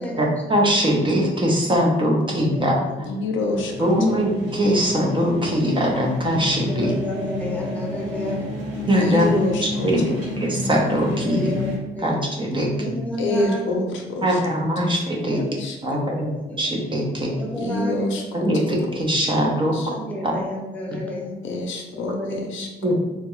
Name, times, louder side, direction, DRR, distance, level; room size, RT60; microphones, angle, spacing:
voice 1, 0.2-2.8 3.8-6.9 8.9-9.3 9.6-10.0 10.4-11.5 12.0-12.9 14.2-15.4 15.8-16.0 16.6-17.3 18.3-20.0 20.2-20.3 22.8-23.1, equal, 25° right, -1 dB, 0.7 m, -21 dB
voice 2, 2.2-3.0 6.7-8.4 11.2-12.2 12.7-13.6 15.2-16.7 17.3-18.3 19.2-21.3 21.9-22.6, left 1 dB, 5° left, -2 dB, 0.8 m, -32 dB
voice 3, 3.1-4.2 9.0-10.2 13.2-14.4 15.6-15.8 17.5-18.4 19.7-19.9 21.4-22.7, left 2 dB, 75° left, 2 dB, 0.6 m, -26 dB
sound 1, 3.5-11.8, left 2 dB, 85° right, 1.4 m, -30 dB
3.5 x 2.1 x 3.0 m, 1.1 s
cardioid pair, 90°, 20 cm